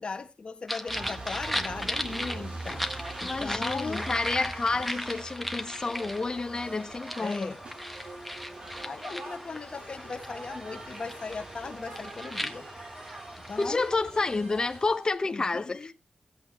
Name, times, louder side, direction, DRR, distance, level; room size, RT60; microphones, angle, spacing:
voice 1, 0.0-2.9 3.2-4.1 7.2-7.6 8.7-12.7 13.5-13.8 15.3-15.9, left 4 dB, 55° left, 1.5 m, -38 dB
sound 1, 0.7-13.9, equal, ahead, 1.5 m, -37 dB
sound 2, 0.9-15.0, right 2 dB, 60° right, 2.7 m, -44 dB
sound 3, 2.3-15.1, right 2 dB, 85° right, 5.7 m, -50 dB
voice 2, 3.2-7.5 13.6-15.9, left 3 dB, 35° left, 1.0 m, -29 dB
16.0 x 8.4 x 3.6 m
wide cardioid pair, 75°, 2 cm